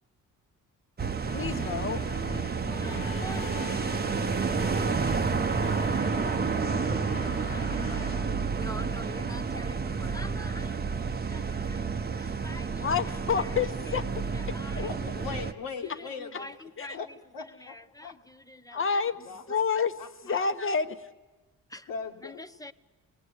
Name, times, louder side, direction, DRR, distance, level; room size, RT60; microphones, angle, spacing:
sound 1, 1.0-15.5, right 5 dB, 25° right, 0.9 m, -30 dB
sound 2, 1.2-9.1, left 7 dB, 65° left, 1.1 m, -43 dB
voice 1, 1.3-2.2 9.5-9.6 12.8-14.2 16.8-17.0 18.7-19.9 20.2-21.0, left 6 dB, 35° left, 10 dB, 1.2 m, -29 dB
voice 2, 2.6-4.0 5.1-5.3 6.5-13.5 13.9-14.0 14.3-14.9 15.8-17.0 17.6-18.8 19.5-19.6 20.3-20.5 21.7-21.9 22.2-22.7, left 1 dB, 10° left, 11 dB, 0.8 m, -46 dB
voice 3, 6.2-6.8 14.7-17.1 17.3-17.8 18.0-18.2 18.7-19.6 20.0-20.4 21.9-22.4, left 5 dB, 80° left, -2 dB, 1.8 m, -40 dB
27.0 x 20.0 x 9.8 m, 1.2 s
cardioid pair, 105°, 35 cm